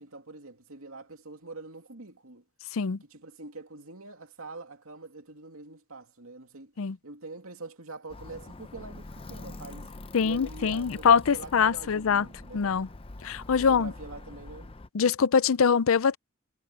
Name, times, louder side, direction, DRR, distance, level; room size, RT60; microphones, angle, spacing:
voice 1, 0.0-2.4 3.1-6.7 7.0-9.9 10.1-12.6 13.6-14.7, right 3 dB, 85° right, 2.6 m, -44 dB
Alarm, 8.1-14.9, left 2 dB, 25° left, 0.7 m, -44 dB
voice 2, 10.1-12.3 12.5-12.9 13.2-13.9 14.9-16.2, left 6 dB, 75° left, 0.5 m, -23 dB
head